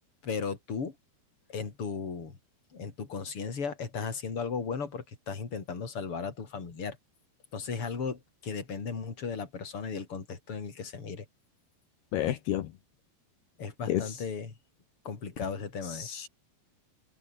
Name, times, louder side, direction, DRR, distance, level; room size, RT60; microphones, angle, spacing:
voice 1, 0.2-1.0 1.5-2.4 2.7-7.0 7.5-11.3 12.3-12.4 13.6-14.5 15.0-16.1, left 5 dB, 35° left, 4.6 m, -36 dB
voice 2, 12.1-12.7 13.9-14.2 15.8-16.3, left 12 dB, 75° left, 3.3 m, -31 dB
omnidirectional pair, 4.8 m